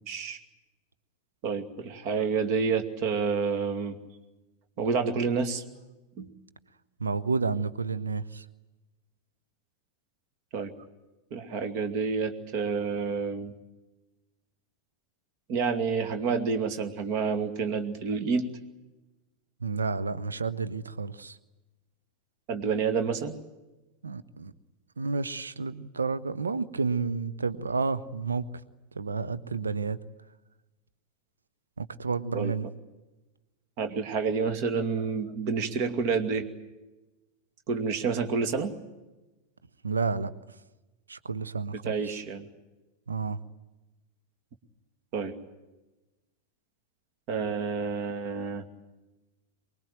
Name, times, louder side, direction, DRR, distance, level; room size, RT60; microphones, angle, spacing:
voice 1, 0.1-0.4 1.4-4.0 4.8-5.6 6.2-6.3 10.5-10.7 11.3-13.5 15.5-18.5 22.5-23.4 32.3-32.5 33.8-36.4 37.7-38.7 41.8-42.5 45.1-45.3 47.3-48.6, right 5 dB, 45° right, 8 dB, 2.4 m, -29 dB
voice 2, 7.0-8.4 19.6-21.4 24.0-24.5 25.0-28.5 28.9-30.0 31.8-32.7 39.8-40.3 41.1-42.2 43.1-43.4, right 4 dB, 75° right, 13 dB, 1.0 m, -30 dB
24.5 x 21.0 x 9.3 m, 1.1 s
figure-of-eight pair, 90°, 0 cm